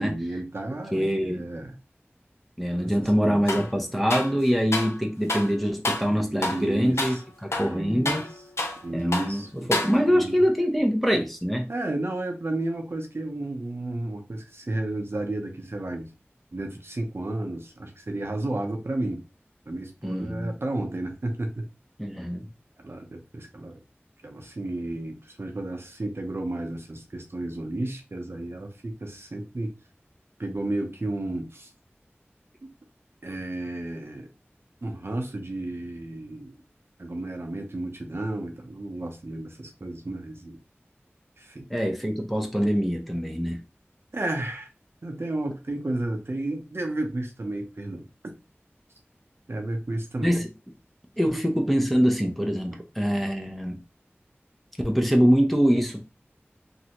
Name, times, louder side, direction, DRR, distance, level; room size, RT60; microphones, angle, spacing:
voice 1, 0.0-1.7 2.7-3.7 6.1-7.2 7.7-8.2 8.8-9.7 10.0-10.4 11.7-16.1 16.5-19.2 19.7-21.7 22.8-23.8 24.2-29.7 30.4-31.7 32.6-32.7 33.2-34.3 34.8-36.5 37.0-40.6 41.4-41.7 44.1-44.7 45.0-48.1 49.5-50.4, right 2 dB, 65° right, 0.6 m, -32 dB
voice 2, 0.9-1.4 2.6-7.2 7.4-8.2 8.9-11.7 20.0-20.5 22.0-22.5 41.7-43.6 50.2-50.5 51.2-53.8 54.8-56.1, equal, ahead, 0.8 m, -24 dB
sound 1, 3.5-3.7 4.1-5.0 5.3-5.5 5.8-6.1 6.4-6.7 7.0-7.2 7.5-8.8 9.1-9.3 9.7-10.3, left 2 dB, 85° left, 0.6 m, -29 dB
3.1 x 2.6 x 2.9 m
wide cardioid pair, 40°, 4 cm